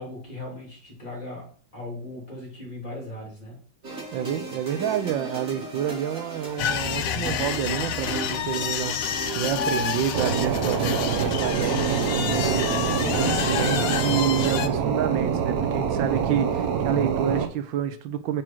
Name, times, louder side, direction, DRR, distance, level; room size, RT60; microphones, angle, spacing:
voice 1, 0.0-3.6, left 2 dB, 20° left, 3.2 m, -38 dB
sound 1, 3.8-14.2, right 3 dB, 35° right, 2.8 m, -36 dB
voice 2, 4.1-18.4, right 10 dB, 85° right, 1.3 m, -28 dB
sound 2, 6.6-14.7, left 9 dB, 75° left, 0.7 m, -28 dB
sound 3, 10.1-17.5, right 7 dB, 60° right, 1.1 m, -25 dB
6.1 x 4.9 x 4.5 m
omnidirectional pair, 2.0 m